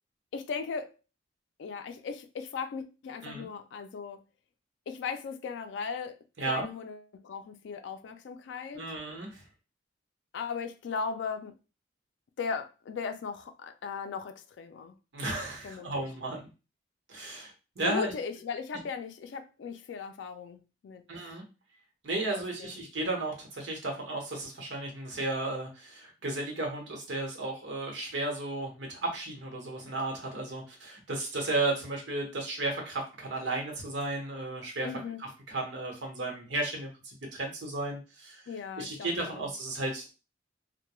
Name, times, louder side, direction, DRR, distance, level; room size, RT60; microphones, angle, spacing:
voice 1, 0.3-0.9 1.6-4.2 4.9-6.2 6.5-8.8 10.3-11.5 12.4-15.0 15.6-16.0 17.8-20.6 20.8-21.0 22.2-22.7 34.8-35.2 38.5-39.5, left 5 dB, 75° left, 0.3 m, -37 dB
voice 2, 8.7-9.4 15.1-16.4 17.1-17.5 17.8-18.1 21.1-21.4 22.0-34.9 35.2-38.4 38.8-40.1, right 2 dB, 80° right, 0.9 m, -34 dB
2.2 x 2.1 x 2.9 m
head